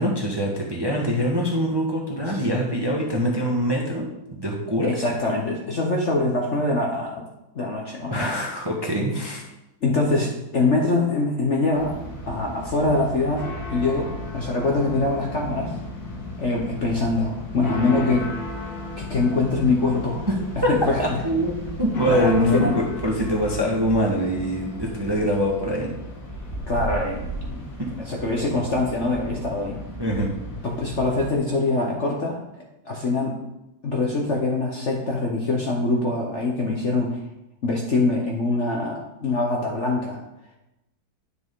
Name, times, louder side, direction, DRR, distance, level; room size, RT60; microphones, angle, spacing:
voice 1, 0.0-4.0 4.3-5.0 8.1-9.4 21.0-25.9 30.0-30.3, equal, 15° right, -1 dB, 1.1 m, -24 dB
voice 2, 4.8-7.2 7.5-8.3 9.8-12.0 12.3-15.8 16.4-18.3 19.0-20.2 20.7-21.0 22.1-22.8 26.7-27.7 28.0-29.8 30.6-33.4 33.8-37.2 37.6-40.2, left 2 dB, 45° left, -1 dB, 1.1 m, -24 dB
sound 1, 11.7-31.3, left 1 dB, 70° left, 2.5 m, -35 dB
10.0 x 6.2 x 3.7 m, 0.93 s
omnidirectional pair, 2.1 m